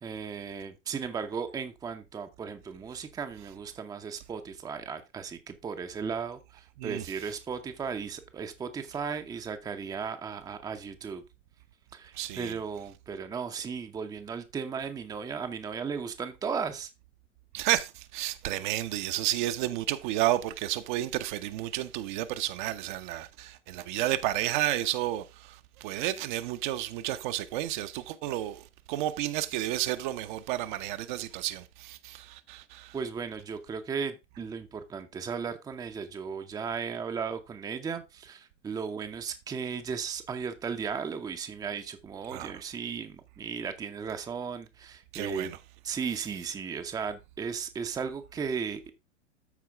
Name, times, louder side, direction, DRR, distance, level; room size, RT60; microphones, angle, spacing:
voice 1, 0.0-11.2 11.9-16.9 32.9-45.5 45.8-48.9, right 6 dB, 10° right, 0.7 m, -36 dB
voice 2, 12.1-12.6 17.5-33.0 42.3-42.6 45.1-45.6, right 14 dB, 40° right, 0.8 m, -31 dB
13.5 x 4.5 x 3.5 m
figure-of-eight pair, 100°, 36 cm